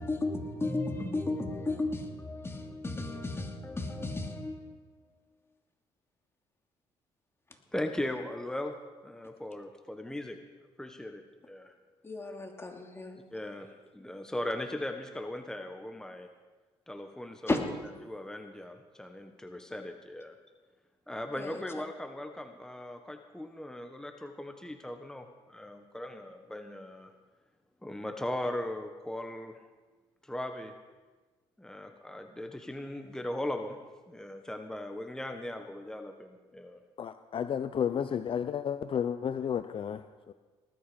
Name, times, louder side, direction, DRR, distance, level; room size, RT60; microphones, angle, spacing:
voice 1, 0.0-4.9 12.0-13.2 17.5-17.6 21.4-21.6, left 2 dB, 20° left, 2.7 m, -34 dB
voice 2, 7.7-8.7 9.0-10.4 10.8-11.7 13.3-16.3 16.9-17.6 18.0-20.3 21.1-27.1 27.8-29.6 30.2-30.7 31.6-33.8 34.1-36.8, left 1 dB, 5° left, 1.4 m, -38 dB
voice 3, 37.0-40.3, left 8 dB, 50° left, 0.7 m, -32 dB
19.5 x 11.5 x 5.2 m
supercardioid pair, 75°, 11 cm